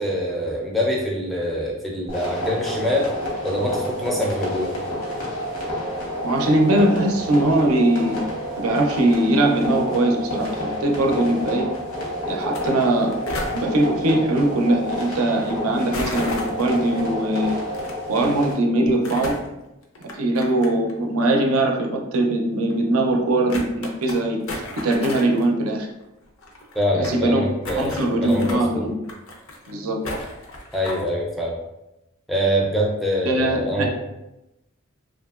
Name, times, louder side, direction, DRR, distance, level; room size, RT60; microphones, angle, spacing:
voice 1, 0.0-3.1 3.4-4.7 26.7-28.9 30.7-31.5 32.3-33.9, equal, ahead, -2 dB, 0.4 m, -24 dB
sound 1, 2.1-18.5, equal, 85° left, 1.1 m, -29 dB
voice 2, 6.2-8.2 8.6-11.7 12.3-13.1 13.5-17.6 18.1-19.4 20.2-25.9 26.9-27.5 27.7-28.9 29.7-30.0 33.2-33.9, right 1 dB, 85° right, 2 dB, 0.5 m, -21 dB
sound 2, 12.4-12.6 12.9-13.6 15.9-16.8 17.7-17.9 18.8-19.5 20.0-20.9 21.2-21.3 22.1-22.2 22.7-22.8 23.1-23.2 23.5-24.2 24.5-25.4 25.7-25.8 26.0-26.1 26.3-27.2 27.6-28.6 29.0-29.7 30.0-31.1, left 1 dB, 70° left, 0.5 m, -33 dB
2.8 x 2.5 x 2.3 m, 0.93 s
head